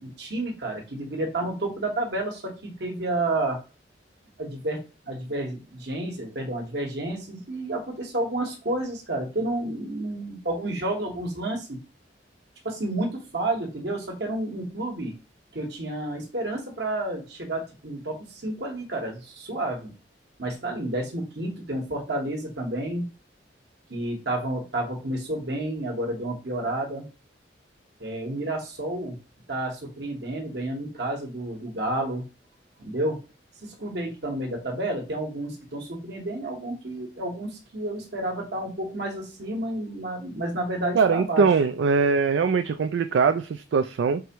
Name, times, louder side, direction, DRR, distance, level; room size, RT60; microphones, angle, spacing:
voice 1, 0.0-3.6 4.4-4.8 5.0-11.8 12.6-15.1 15.5-19.9 20.4-23.0 23.9-27.1 28.0-29.2 29.5-32.2 32.8-33.2 33.6-41.5, right 1 dB, 65° right, 1.4 m, -30 dB
voice 2, 40.9-44.2, right 5 dB, 80° right, 0.4 m, -22 dB
4.7 x 3.4 x 3.0 m
head